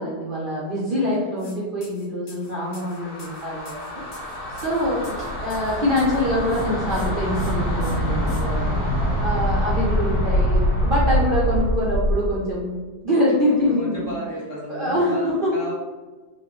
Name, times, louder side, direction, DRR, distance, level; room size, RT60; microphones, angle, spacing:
voice 1, 0.0-8.9 9.2-14.2 14.7-15.5, left 1 dB, 80° right, -6 dB, 0.4 m, -25 dB
sound 1, 1.4-1.6 1.8-6.2 6.5-7.1 7.3-7.5 7.8-8.4, left 3 dB, 80° left, 1.5 m, -47 dB
sound 2, 2.5-12.3, equal, 50° left, 1.5 m, -24 dB
voice 2, 8.9-9.6 13.6-15.7, equal, 25° left, -9 dB, 0.9 m, -35 dB
4.1 x 2.1 x 3.1 m, 1.3 s
omnidirectional pair, 1.8 m